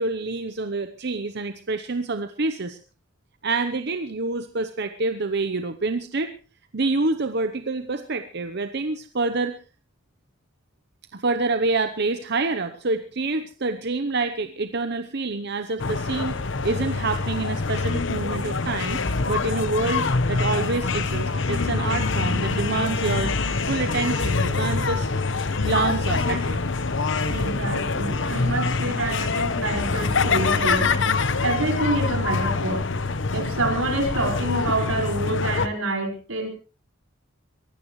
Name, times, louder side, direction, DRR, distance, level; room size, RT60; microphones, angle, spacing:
voice 1, 0.0-2.8 3.4-6.3 6.7-9.5 11.1-16.4 16.6-23.3 23.7-25.1 25.6-26.6, right 3 dB, 55° right, 9 dB, 0.9 m, -27 dB
sound 1, 15.8-35.7, left 4 dB, 65° left, 1.0 m, -25 dB
voice 2, 27.3-31.0 31.4-32.9 33.3-36.5, right 2 dB, 85° right, 3 dB, 5.1 m, -27 dB
23.0 x 16.5 x 3.2 m, 0.34 s
head